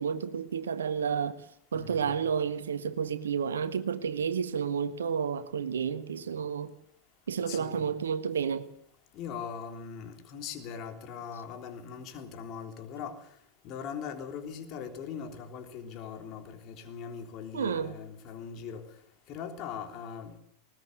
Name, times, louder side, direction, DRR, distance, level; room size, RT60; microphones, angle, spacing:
voice 1, 0.0-1.4 1.7-6.7 7.3-8.7 17.5-18.0, right 7 dB, 65° right, 1.5 m, -31 dB
voice 2, 1.7-2.2 7.5-7.9 9.1-13.2 13.6-18.8 19.3-20.4, left 7 dB, 40° left, 3.4 m, -40 dB
20.5 x 19.0 x 8.1 m
figure-of-eight pair, 90°, 0 cm